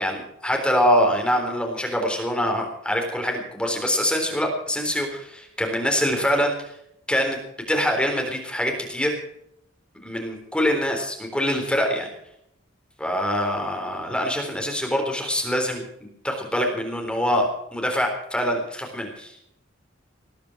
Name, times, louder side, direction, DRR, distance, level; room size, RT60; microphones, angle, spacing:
voice 1, 0.0-6.7 7.1-7.4 7.7-9.1 9.9-12.1 13.0-15.9 16.2-19.3, equal, 5° left, 2 dB, 3.8 m, -24 dB
19.5 x 10.5 x 6.3 m, 0.73 s
head